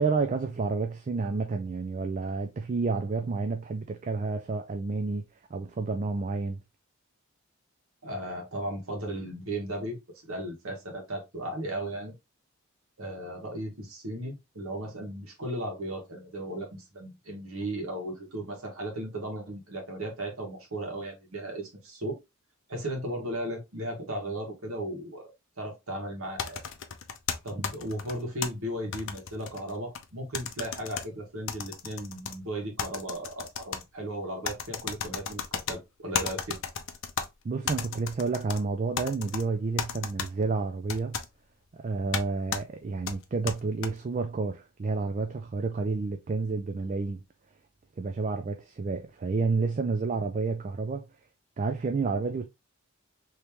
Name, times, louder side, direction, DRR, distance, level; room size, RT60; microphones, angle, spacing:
voice 1, 0.0-5.2 5.5-6.6 37.4-41.2 41.7-47.2 48.0-51.1 51.6-52.5, right 4 dB, 35° right, 0.3 m, -30 dB
voice 2, 8.0-12.1 13.0-22.2 22.7-25.3 25.6-26.6 27.4-36.6, right 1 dB, 75° right, 1.3 m, -36 dB
sound 1, 26.4-28.5 28.9-30.0 30.3-31.0 31.5-32.3 32.8-33.8 34.4-35.8 36.1-37.3 37.7-38.6 39.0-39.4 39.8-40.3 40.9-41.3 42.1-42.2 42.5-42.6 43.1-43.9, left 7 dB, 60° left, 0.5 m, -33 dB
3.5 x 2.9 x 2.9 m
head